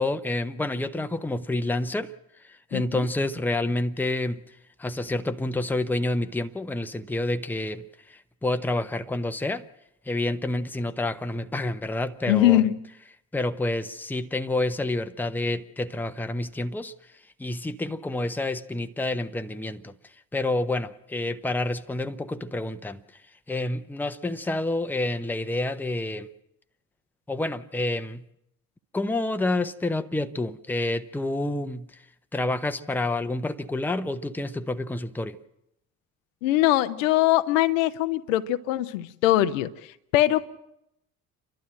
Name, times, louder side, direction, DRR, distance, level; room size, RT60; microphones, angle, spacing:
voice 1, 0.0-2.1 2.5-4.4 4.8-9.7 10.1-12.6 13.3-16.9 17.4-19.9 20.3-23.0 23.5-26.3 27.3-28.2 28.9-32.0 32.3-35.4, left 2 dB, 5° left, 0.8 m, -28 dB
voice 2, 2.7-3.1 12.3-12.8 36.4-39.7 40.1-40.5, left 14 dB, 65° left, 0.8 m, -22 dB
30.0 x 12.0 x 7.7 m
figure-of-eight pair, 55°, 42 cm